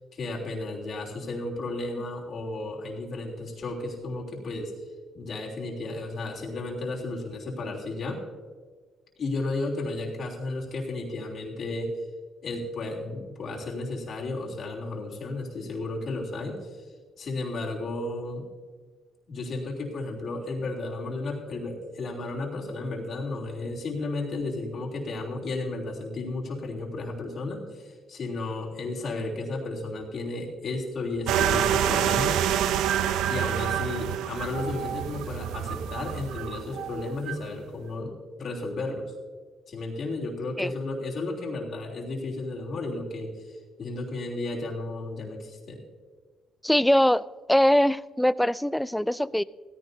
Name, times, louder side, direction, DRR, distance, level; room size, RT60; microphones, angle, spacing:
voice 1, 0.1-4.7 5.1-8.2 9.2-11.9 12.4-16.9 17.2-18.4 19.3-32.4 33.3-39.1 39.7-45.8, left 2 dB, 55° left, -1 dB, 3.3 m, -33 dB
sound 1, 31.3-37.5, right 10 dB, 90° right, 0.5 m, -27 dB
voice 2, 46.6-47.2 47.5-49.4, left 1 dB, 5° left, 18 dB, 0.3 m, -22 dB
16.5 x 15.0 x 2.8 m, 1.5 s
cardioid pair, 90°, 0 cm